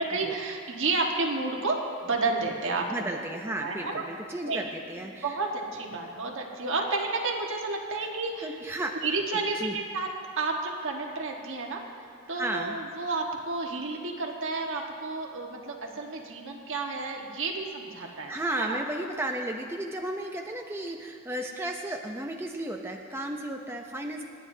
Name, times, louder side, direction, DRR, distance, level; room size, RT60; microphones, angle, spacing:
voice 1, 0.0-3.0 3.6-4.0 4.5-4.6 5.2-8.5 9.0-10.1 10.4-18.8, right 3 dB, 60° right, 1 dB, 1.4 m, -31 dB
voice 2, 2.8-5.4 8.4-9.0 9.3-9.8 12.3-12.8 18.0-24.2, right 1 dB, 10° right, 1 dB, 0.6 m, -34 dB
27.0 x 9.6 x 2.8 m, 2.4 s
head